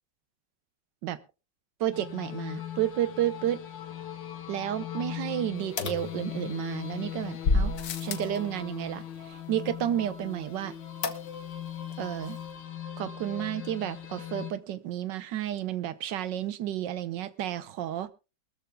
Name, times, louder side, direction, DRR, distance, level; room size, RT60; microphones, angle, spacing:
voice 1, 1.8-3.6 4.5-7.7 8.0-10.7 12.0-12.4 13.0-18.1, right 11 dB, 75° right, 15 dB, 1.5 m, -31 dB
sound 1, 1.9-14.5, left 10 dB, 90° left, 1.9 m, -39 dB
sound 2, 5.8-6.8 7.4-8.4 11.0-11.6 11.9-12.0 12.3-12.4, left 3 dB, 70° left, 1.7 m, -29 dB
22.5 x 13.5 x 2.2 m, 0.28 s
omnidirectional pair, 1.9 m